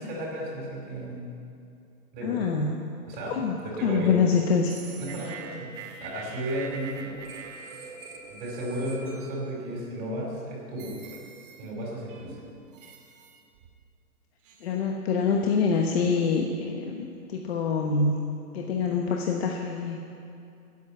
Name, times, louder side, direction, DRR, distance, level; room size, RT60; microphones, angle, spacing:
voice 1, 0.0-1.4 2.1-2.4 3.1-4.1 5.0-5.7 6.0-7.2 7.8-7.9 8.3-10.9 11.6-12.4, right 1 dB, 20° right, -4 dB, 4.3 m, -34 dB
voice 2, 2.2-2.7 3.3-3.6 3.8-4.7 14.6-18.1 18.5-20.0, left 5 dB, 45° left, 1 dB, 1.2 m, -25 dB
sound 1, 4.6-9.8 10.3-10.5 10.8-11.7 12.1-13.8 14.4-14.8, right 5 dB, 35° right, 1.8 m, -44 dB
14.5 x 8.5 x 8.8 m, 2.5 s
hypercardioid pair, 155°, 45 cm